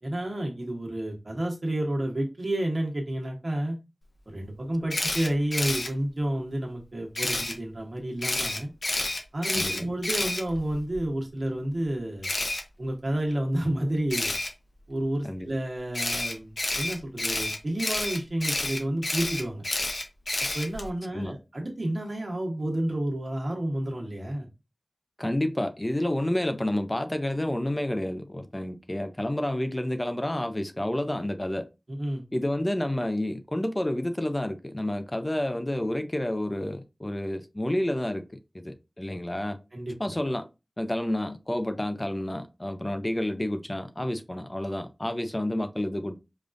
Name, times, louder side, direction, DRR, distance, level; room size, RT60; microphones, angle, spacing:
voice 1, 0.0-3.8 4.3-8.7 9.3-12.3 12.8-14.3 14.9-19.6 20.5-24.5 31.9-32.2 39.7-40.1, right 1 dB, 60° right, 1.2 m, -30 dB
Camera, 4.9-5.9 7.1-7.5 8.2-11.0 12.2-12.6 14.1-14.5 15.9-20.9, left 2 dB, 70° left, 0.8 m, -29 dB
voice 2, 9.5-9.9 15.2-15.5 21.1-21.3 25.2-31.7 32.3-38.3 38.5-39.6 40.0-40.5 40.8-46.2, left 1 dB, 25° left, 0.5 m, -29 dB
5.0 x 2.4 x 2.5 m
wide cardioid pair, 50°, 0 cm